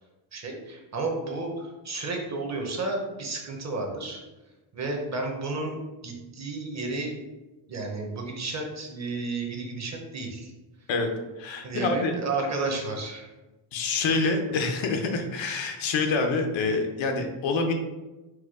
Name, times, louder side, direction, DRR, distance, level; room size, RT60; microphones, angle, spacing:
voice 1, 0.3-4.2 4.7-7.2 7.7-10.5 11.6-13.3, right 3 dB, 35° right, 1 dB, 0.8 m, -32 dB
voice 2, 11.4-12.1 13.7-17.7, left 3 dB, 75° left, 4 dB, 0.8 m, -26 dB
4.6 x 2.2 x 4.7 m, 1.1 s
cardioid pair, 150°, 46 cm